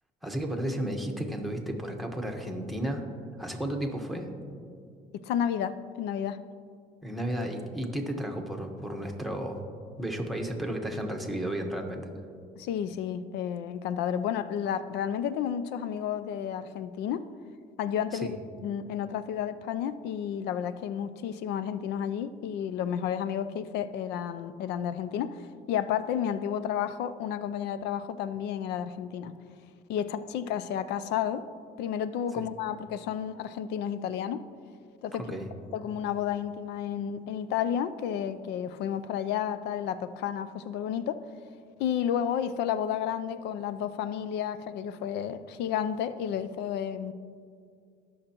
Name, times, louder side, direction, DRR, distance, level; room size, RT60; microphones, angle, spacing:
voice 1, 0.2-3.1 3.4-4.3 7.0-9.6 10.0-12.1 18.2-18.3 32.4-32.5 35.2-35.5, right 1 dB, ahead, 2 dB, 1.2 m, -33 dB
voice 2, 5.1-6.4 12.6-17.3 17.8-29.4 29.9-31.5 31.8-34.4 35.0-35.4 35.7-41.2 41.8-47.1, left 9 dB, 85° left, 13 dB, 0.5 m, -31 dB
19.5 x 6.5 x 3.0 m, 2.3 s
cardioid pair, 110°, 17 cm